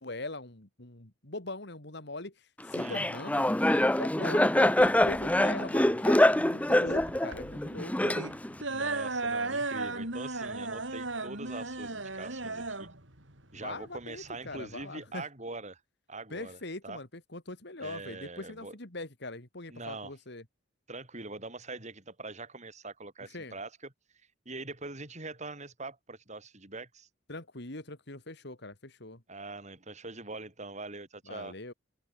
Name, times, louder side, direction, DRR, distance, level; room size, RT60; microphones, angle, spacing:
voice 1, 0.0-3.5 4.0-8.2 13.5-15.2 16.3-20.4 23.3-23.6 27.3-29.2 31.3-31.7, left 2 dB, 60° left, 3.5 m, -41 dB
Laughter, 2.7-8.6, left 1 dB, 5° left, 0.8 m, -25 dB
voice 2, 2.7-3.1 8.7-12.9 13.5-15.8 16.1-17.0 17.8-18.8 19.7-20.1 20.9-23.9 24.4-27.1 29.3-31.5, right 3 dB, 40° right, 6.7 m, -43 dB
sound 1, 4.8-14.8, right 3 dB, 75° right, 6.5 m, -36 dB
open air
head